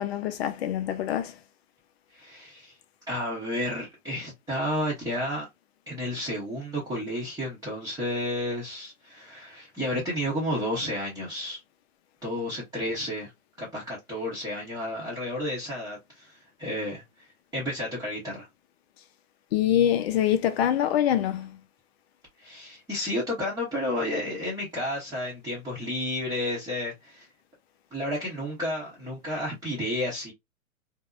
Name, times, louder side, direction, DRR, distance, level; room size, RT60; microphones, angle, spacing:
voice 1, 0.0-1.4 19.5-21.6, left 10 dB, 50° left, 0.5 m, -25 dB
voice 2, 2.1-2.7 3.1-5.5 5.9-11.6 12.2-13.3 13.6-17.0 17.5-18.5 22.4-27.3 27.9-30.3, left 1 dB, 10° right, 0.8 m, -31 dB
2.7 x 2.1 x 2.2 m
hypercardioid pair, 120°, 41 cm